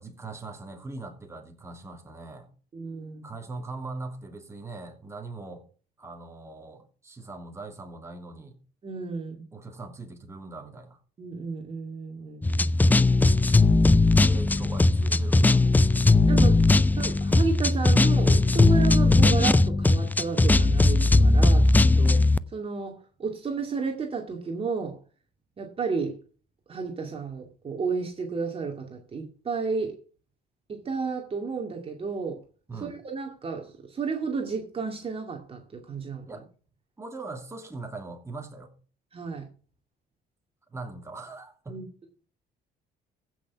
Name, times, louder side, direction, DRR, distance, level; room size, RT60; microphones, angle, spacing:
voice 1, 0.0-2.5 3.2-5.6 6.0-8.6 9.5-11.0 14.1-15.6 32.7-32.9 36.3-36.4 37.0-38.7 40.7-41.8, right 3 dB, 15° right, 3 dB, 2.9 m, -40 dB
voice 2, 2.7-3.3 8.8-9.5 11.2-12.9 13.9-14.1 16.3-16.6 17.0-22.2 22.5-25.0 25.6-26.2 26.7-29.9 30.7-32.4 32.8-36.3 39.1-39.5 41.7-41.8, right 5 dB, 35° right, 3 dB, 2.4 m, -32 dB
sound 1, 12.4-22.4, left 2 dB, 10° left, 0.5 m, -19 dB
15.0 x 6.2 x 5.9 m, 0.40 s
cardioid pair, 110°, 17 cm